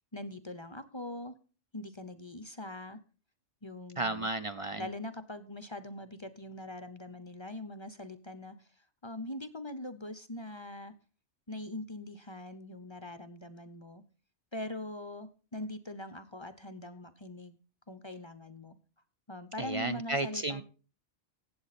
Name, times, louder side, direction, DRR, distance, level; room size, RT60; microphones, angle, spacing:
voice 1, 0.1-1.3 1.7-3.0 3.6-4.3 4.8-8.7 9.0-10.9 11.5-14.0 14.5-17.6 17.9-18.8 19.3-20.6, left 1 dB, 30° left, 12 dB, 0.5 m, -42 dB
voice 2, 4.0-4.9 19.6-20.6, right 2 dB, 60° right, 11 dB, 0.3 m, -33 dB
16.5 x 7.8 x 4.1 m, 0.37 s
omnidirectional pair, 1.3 m